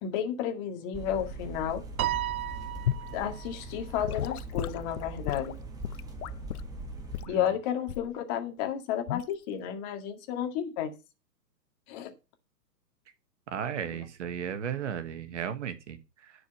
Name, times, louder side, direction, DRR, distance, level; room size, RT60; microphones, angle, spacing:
voice 1, 0.0-1.8 3.1-5.6 7.3-10.9 11.9-12.1 13.9-14.0, left 9 dB, 25° left, 6 dB, 1.9 m, -32 dB
sound 1, 0.9-7.3, right 2 dB, 5° right, 1.3 m, -41 dB
Piano, 2.0-3.5, right 13 dB, 60° right, 0.5 m, -33 dB
Gurgling / Sink (filling or washing) / Liquid, 2.9-3.1 4.0-6.7 7.1-7.4 7.9-8.2 9.1-9.3, left 11 dB, 65° left, 0.5 m, -34 dB
voice 2, 13.5-16.3, right 8 dB, 45° right, 11 dB, 1.4 m, -35 dB
11.0 x 4.8 x 7.7 m, 0.28 s
figure-of-eight pair, 130°, 50 cm